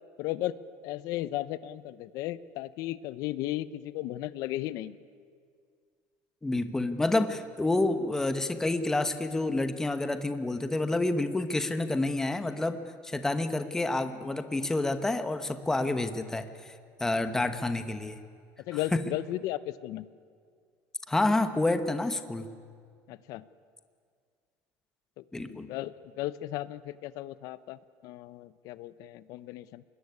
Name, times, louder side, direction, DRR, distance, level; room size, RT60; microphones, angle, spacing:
voice 1, 0.2-0.5 0.8-5.0 15.8-15.9 18.7-20.1 23.1-23.5 25.2-29.8, left 15 dB, 55° left, 16 dB, 0.8 m, -35 dB
voice 2, 6.4-12.8 13.0-16.7 17.0-18.2 18.9-19.0 21.1-22.5 25.3-25.7, left 2 dB, 5° left, 9 dB, 1.0 m, -28 dB
25.0 x 20.5 x 9.6 m, 2.1 s
cardioid pair, 180°, 7 cm